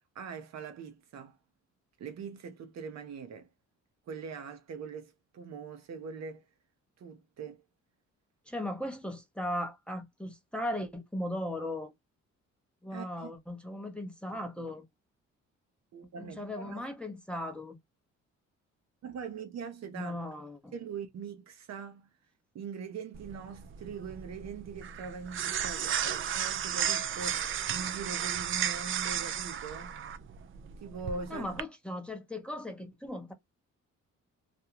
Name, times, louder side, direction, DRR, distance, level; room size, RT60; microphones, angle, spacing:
voice 1, 0.1-1.4 2.0-3.5 4.1-6.4 7.0-7.6 12.9-13.3 15.9-16.9 19.0-20.2 20.7-22.1 22.5-30.0 30.8-31.6, right 5 dB, 60° right, 0.8 m, -42 dB
voice 2, 8.5-11.9 12.8-14.8 16.2-17.8 19.9-20.7 31.3-33.3, left 1 dB, 5° left, 0.7 m, -37 dB
sound 1, 23.1-31.6, right 9 dB, 45° right, 0.4 m, -34 dB
2.5 x 2.3 x 2.8 m
cardioid pair, 90°, 30 cm